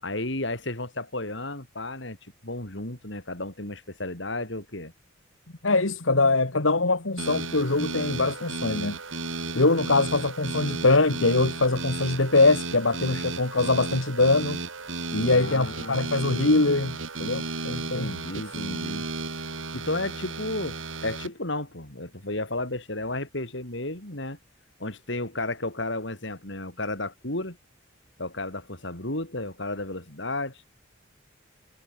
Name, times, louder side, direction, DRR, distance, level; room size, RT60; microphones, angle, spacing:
voice 1, 0.0-4.9 15.2-16.0 17.9-19.1 19.7-20.8 21.0-24.4 24.8-27.6 28.2-30.6, left 2 dB, 60° left, 4.9 m, -33 dB
voice 2, 5.6-9.0 9.5-14.6 15.1-18.1, left 3 dB, 75° left, 2.1 m, -23 dB
sound 1, 7.2-21.3, right 3 dB, 75° right, 6.8 m, -34 dB
head